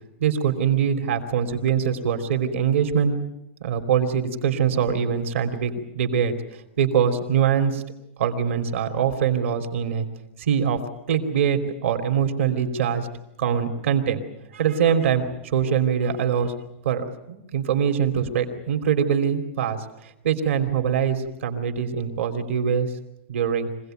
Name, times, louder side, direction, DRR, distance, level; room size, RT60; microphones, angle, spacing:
voice 1, 0.2-3.1 3.6-7.8 8.2-10.0 10.4-10.8 11.1-13.1 13.4-14.2 14.5-16.5 16.8-22.9 23.3-23.7, right 7 dB, 80° right, 6 dB, 3.2 m, -23 dB
25.0 x 18.0 x 9.2 m, 0.85 s
supercardioid pair, 160°, 7 cm